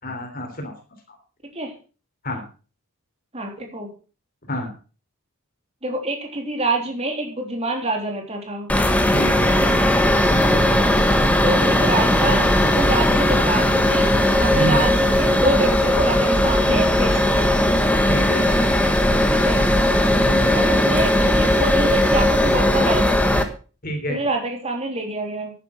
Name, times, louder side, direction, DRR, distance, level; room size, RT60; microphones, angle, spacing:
voice 1, 0.0-0.7 2.2-2.4 4.5-4.7 9.1-9.5 10.3-10.5 14.5-14.8 18.1-18.5 20.2-20.6 23.8-24.2, equal, 40° left, 3 dB, 3.6 m, -27 dB
voice 2, 1.4-1.7 3.3-3.9 5.8-8.7 9.4-9.8 11.4-14.1 14.4-17.5 19.2-19.6 20.5-23.5 24.1-25.5, right 2 dB, 25° right, 2 dB, 3.4 m, -26 dB
sound 1, 8.7-23.4, left 1 dB, 5° left, 1.3 m, -18 dB
11.0 x 10.0 x 5.9 m, 0.36 s
head